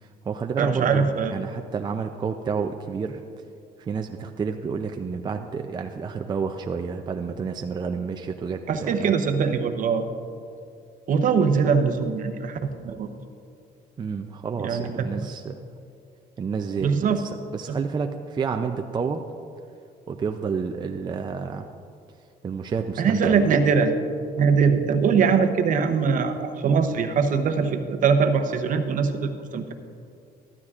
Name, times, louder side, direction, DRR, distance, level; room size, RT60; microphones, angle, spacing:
voice 1, 0.0-3.2 3.8-9.1 14.0-15.6 16.4-19.3 20.1-21.7 22.4-23.5, right 5 dB, 25° right, 5 dB, 0.4 m, -30 dB
voice 2, 0.6-1.3 8.7-10.0 11.1-13.1 14.6-15.3 16.8-17.2 17.7-17.8 23.0-23.9 24.4-29.7, right 5 dB, 50° right, 7 dB, 0.8 m, -22 dB
13.5 x 12.0 x 2.4 m, 2.4 s
cardioid pair, 110°, 17 cm